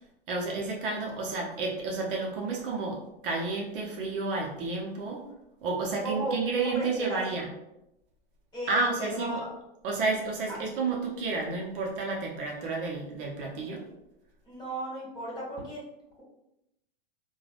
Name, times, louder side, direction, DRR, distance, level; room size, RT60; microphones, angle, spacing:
voice 1, 0.3-5.3 5.6-7.5 8.7-9.4 9.8-13.8, right 3 dB, 60° right, -1 dB, 0.8 m, -31 dB
voice 2, 6.0-7.2 8.5-9.5 10.5-10.6 14.4-15.8, right 1 dB, 15° left, -5 dB, 1.4 m, -35 dB
3.1 x 2.3 x 2.4 m, 0.87 s
hypercardioid pair, 110°, 30 cm